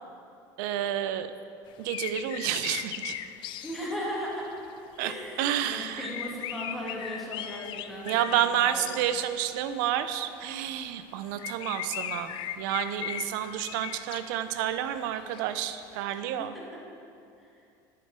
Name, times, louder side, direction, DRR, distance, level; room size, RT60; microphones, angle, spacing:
voice 1, 0.6-1.3 1.8-3.1 5.0-5.1 5.4-6.1 8.0-16.5, right 11 dB, 80° right, 11 dB, 0.5 m, -30 dB
sound 1, 1.7-5.0 5.4-5.5 5.9-9.5 10.1-10.2 11.0-11.1 11.4-16.0, left 11 dB, 55° left, 0.5 m, -38 dB
voice 2, 3.6-4.6 5.0-9.0 16.1-16.8 17.4-17.5, equal, ahead, -6 dB, 2.5 m, -37 dB
10.0 x 7.7 x 4.4 m, 2.6 s
supercardioid pair, 110°, 10 cm